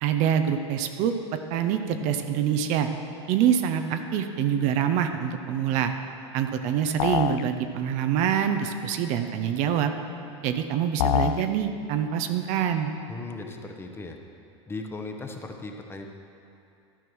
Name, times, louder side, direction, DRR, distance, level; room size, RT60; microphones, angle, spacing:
voice 1, 0.0-1.1 1.5-2.9 3.3-5.9 6.3-9.9 10.4-12.9, right 9 dB, 50° right, 7 dB, 0.6 m, -25 dB
sound 1, 7.0-7.5 11.0-11.5, left 12 dB, 65° left, 0.4 m, -24 dB
voice 2, 13.1-14.2 14.7-16.1, left 3 dB, 15° left, 3 dB, 0.8 m, -37 dB
12.5 x 4.6 x 6.1 m, 2.7 s
hypercardioid pair, 105°, 15 cm